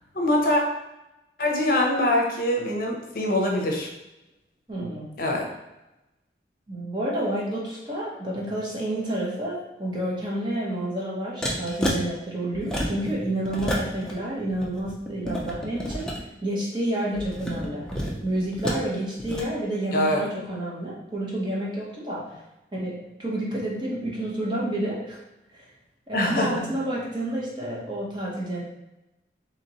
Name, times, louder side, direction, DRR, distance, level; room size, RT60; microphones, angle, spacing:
voice 1, 0.1-0.6 1.4-3.9 5.2-5.5 19.9-20.2 26.1-26.7, left 1 dB, 55° left, 0 dB, 0.7 m, -23 dB
voice 2, 4.7-5.1 6.7-16.1 16.4-17.8 18.2-22.4 22.7-25.2 25.5-25.7 26.1-28.6, right 1 dB, 25° right, -5 dB, 0.9 m, -29 dB
sound 1, 11.4-12.0 12.5-13.1 13.4-14.1 14.5-16.2 17.1-18.8 19.2-19.4, equal, 5° left, 0.4 m, -30 dB
4.0 x 2.9 x 2.9 m, 0.95 s
head